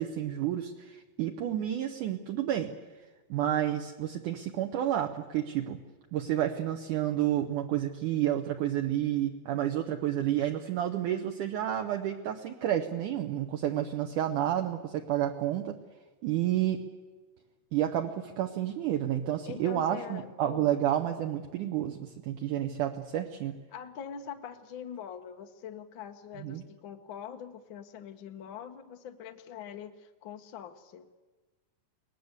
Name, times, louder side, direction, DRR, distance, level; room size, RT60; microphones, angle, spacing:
voice 1, 0.0-2.7 3.3-5.8 6.1-15.8 16.2-16.8 17.7-23.6 26.4-26.6, right 11 dB, 70° right, 4 dB, 2.2 m, -30 dB
voice 2, 19.4-20.9 23.7-31.1, left 8 dB, 85° left, 6 dB, 1.0 m, -43 dB
23.5 x 19.0 x 8.0 m, 1.3 s
omnidirectional pair, 4.3 m